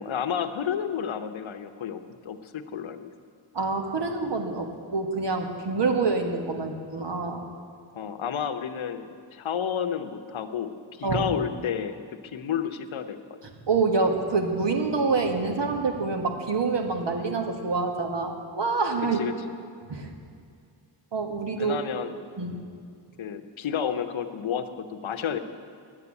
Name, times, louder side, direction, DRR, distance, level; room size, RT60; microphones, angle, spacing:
voice 1, 0.0-3.1 7.9-10.7 11.0-12.0 12.3-13.2 19.2-19.6 21.6-22.2 23.2-25.4, left 8 dB, 75° left, 9 dB, 0.9 m, -31 dB
voice 2, 3.5-7.5 11.0-11.3 13.6-19.2 19.9-20.1 21.1-21.8 22.4-22.6, right 4 dB, 60° right, 4 dB, 1.5 m, -26 dB
9.9 x 8.3 x 9.7 m, 2.3 s
wide cardioid pair, 75°, 47 cm